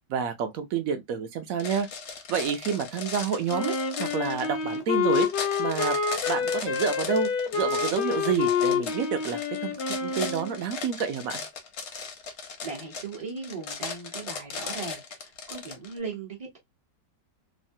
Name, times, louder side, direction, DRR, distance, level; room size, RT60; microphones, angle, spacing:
voice 1, 0.1-1.9 2.3-5.3 5.6-9.8 10.0-11.4, right 6 dB, 70° right, 0.8 m, -29 dB
sound 1, 1.6-16.0, left 5 dB, 60° left, 0.8 m, -37 dB
Wind instrument woodwind instrument, 3.5-10.6, left 6 dB, 75° left, 1.2 m, -28 dB
voice 2, 12.6-16.6, right 4 dB, 40° right, 0.5 m, -38 dB
3.1 x 2.1 x 2.6 m
omnidirectional pair, 1.9 m